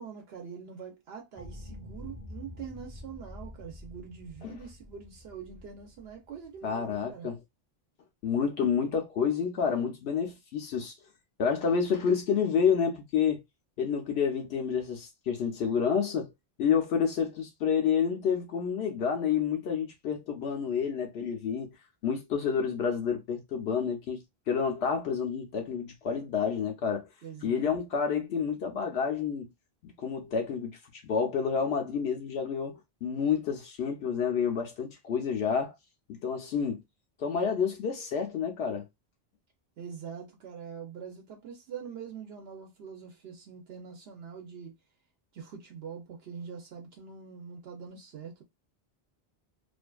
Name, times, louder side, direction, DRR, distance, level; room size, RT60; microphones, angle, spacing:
voice 1, 0.0-7.3 27.2-27.7 39.8-44.7 45.3-48.4, right 7 dB, 75° right, 0.8 m, -44 dB
sound 1, 1.4-7.1, left 1 dB, 10° left, 0.7 m, -47 dB
voice 2, 6.6-7.4 8.2-10.9 11.4-13.4 13.8-16.3 16.6-21.7 22.0-24.2 24.5-27.1 27.4-29.5 29.8-35.7 36.1-36.8 37.2-38.9, left 6 dB, 80° left, 0.9 m, -29 dB
2.5 x 2.4 x 2.2 m
omnidirectional pair, 1.1 m